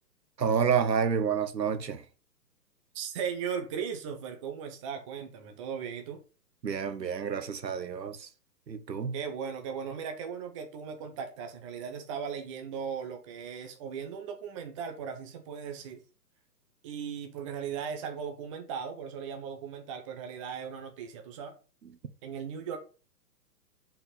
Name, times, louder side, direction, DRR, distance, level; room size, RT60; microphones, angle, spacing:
voice 1, 0.4-2.0 6.6-8.3 8.7-9.2, right 7 dB, 85° right, 1.2 m, -29 dB
voice 2, 2.9-6.2 9.1-16.0 16.8-21.5 22.2-22.8, right 7 dB, 20° right, 0.7 m, -37 dB
5.3 x 4.5 x 5.5 m
hypercardioid pair, 145°, 49 cm